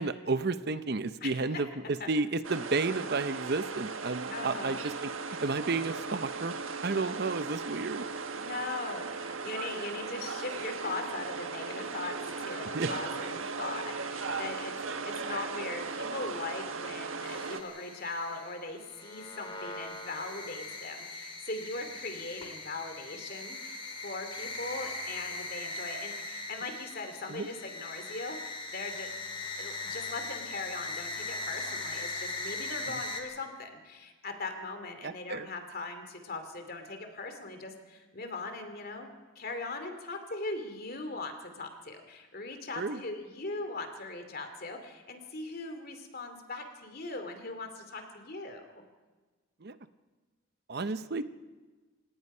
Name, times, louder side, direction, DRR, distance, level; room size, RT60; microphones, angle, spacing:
voice 1, 0.0-6.5 6.8-8.0 12.7-12.9 27.3-27.5 35.0-35.5 42.8-43.0 49.6-49.8 50.7-51.2, right 3 dB, 50° right, 12 dB, 0.7 m, -32 dB
sound 1, 2.4-17.6, right 4 dB, 80° right, 1.5 m, -37 dB
voice 2, 4.3-4.8 8.4-39.1 39.3-48.6, left 3 dB, 50° left, 6 dB, 2.7 m, -40 dB
sound 2, 17.2-33.2, left 2 dB, 25° left, 3.2 m, -40 dB
28.5 x 18.0 x 5.5 m, 1.3 s
head